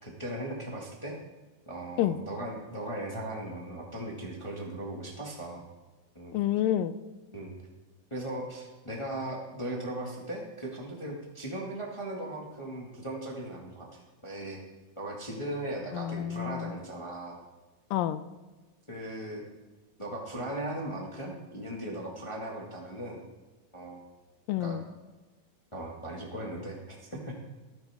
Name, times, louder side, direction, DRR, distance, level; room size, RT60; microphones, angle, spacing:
voice 1, 0.0-1.1 1.7-5.6 6.1-6.4 7.3-7.5 8.1-14.6 15.0-17.4 18.9-19.4 20.0-23.2 23.7-24.0 24.6-24.8 25.7-27.4, right 1 dB, 30° left, -2 dB, 0.5 m, -38 dB
voice 2, 6.3-6.9 15.9-16.7 17.9-18.2 24.5-24.8, left 12 dB, 80° left, 14 dB, 2.2 m, -28 dB
14.0 x 13.0 x 3.6 m, 1.2 s
omnidirectional pair, 4.2 m